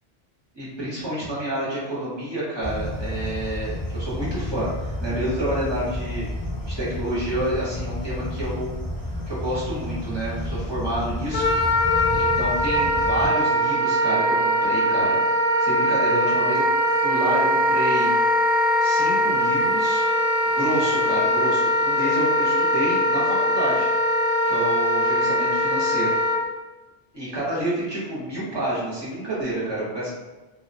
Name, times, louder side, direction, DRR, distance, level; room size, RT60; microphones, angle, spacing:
voice 1, 0.5-6.3 6.7-8.7 9.3-11.5 12.2-15.2 15.6-16.6 17.0-18.1 18.8-20.0 20.5-23.9 24.4-26.1 27.1-30.1, right 1 dB, 25° right, -8 dB, 0.7 m, -29 dB
sound 1, 2.6-13.3, left 1 dB, 10° left, 0.4 m, -31 dB
Wind instrument woodwind instrument, 11.3-26.4, equal, 65° left, 0.7 m, -21 dB
2.2 x 2.2 x 2.5 m, 1.1 s
omnidirectional pair, 1.2 m